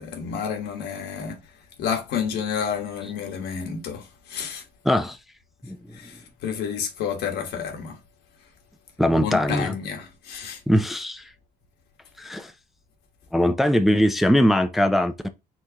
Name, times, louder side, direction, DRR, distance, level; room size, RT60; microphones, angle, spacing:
voice 1, 0.0-4.6 5.9-8.0 9.2-10.6, left 7 dB, 80° left, 1.3 m, -30 dB
voice 2, 4.9-5.2 5.6-6.0 9.0-9.7 10.7-11.3 12.2-12.5 13.3-15.3, equal, ahead, 0.4 m, -21 dB
4.5 x 3.7 x 2.8 m
cardioid pair, 110°, 17 cm